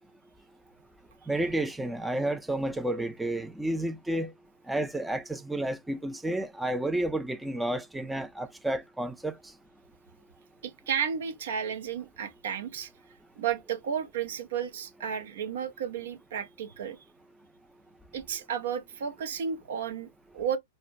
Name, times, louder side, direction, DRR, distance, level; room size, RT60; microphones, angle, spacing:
voice 1, 1.3-4.3 4.7-9.3, right 1 dB, 5° right, 0.3 m, -31 dB
voice 2, 10.6-12.9 13.4-17.0 18.1-20.6, right 8 dB, 65° right, 0.5 m, -33 dB
4.3 x 2.1 x 2.4 m
figure-of-eight pair, 105°, 0 cm